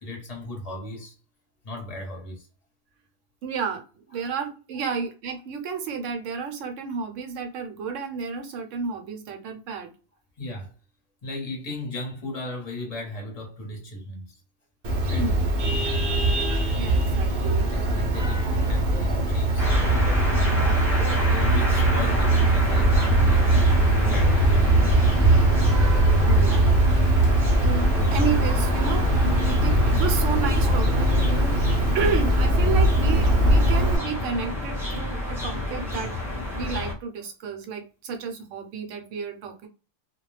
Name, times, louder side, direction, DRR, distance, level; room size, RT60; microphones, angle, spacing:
voice 1, 0.0-1.1 1.6-2.5 10.4-10.7 11.2-14.3 15.1-15.2 17.6-20.3 21.3-24.9, left 1 dB, 35° left, 0.8 m, -36 dB
voice 2, 3.4-9.9 15.1-15.4 16.8-17.7 26.2-27.3 27.6-31.6 31.9-36.1 36.5-39.7, right 5 dB, 70° right, 0.9 m, -31 dB
Vehicle horn car horn honking, 14.8-34.0, right 1 dB, 50° right, 0.6 m, -21 dB
sound 1, 19.6-36.9, left 1 dB, ahead, 0.7 m, -30 dB
2.4 x 2.1 x 3.1 m
omnidirectional pair, 1.4 m